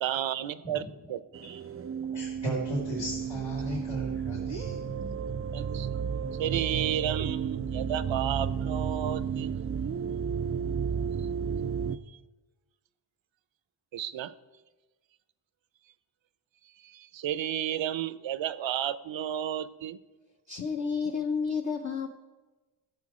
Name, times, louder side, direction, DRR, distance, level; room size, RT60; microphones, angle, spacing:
voice 1, 0.0-1.6 5.5-5.9 6.4-9.5 13.9-14.3 16.8-20.0, right 10 dB, 70° right, 15 dB, 0.7 m, -32 dB
voice 2, 0.8-1.2 1.4-4.8, right 1 dB, 65° left, -5 dB, 3.8 m, -36 dB
sound 1, 1.3-12.0, right 7 dB, 30° right, 0.4 m, -32 dB
voice 3, 20.5-22.2, left 5 dB, 35° left, 2 dB, 0.9 m, -31 dB
15.0 x 7.0 x 4.9 m, 1.2 s
cardioid pair, 75°, 47 cm